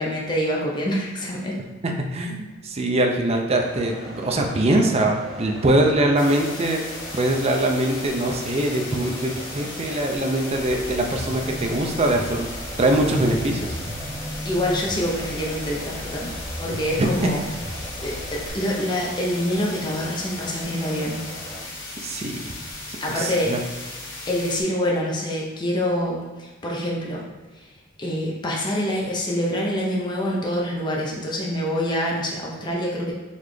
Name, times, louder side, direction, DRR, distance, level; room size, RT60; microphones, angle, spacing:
voice 1, 0.0-1.6 14.4-17.4 17.8-21.2 23.0-23.6 24.3-27.2 27.6-27.7 28.0-33.1, equal, 20° left, -3 dB, 0.6 m, -26 dB
voice 2, 1.8-6.8 7.1-13.8 17.0-17.1 22.0-22.5 23.1-23.6, right 1 dB, 30° right, 2 dB, 0.4 m, -22 dB
sound 1, 3.5-21.6, equal, ahead, 0.9 m, -40 dB
sound 2, 6.2-24.6, left 2 dB, 65° left, 1.3 m, -37 dB
sound 3, 10.5-18.5, equal, 65° right, 0.9 m, -36 dB
4.0 x 3.2 x 3.1 m, 1.2 s
head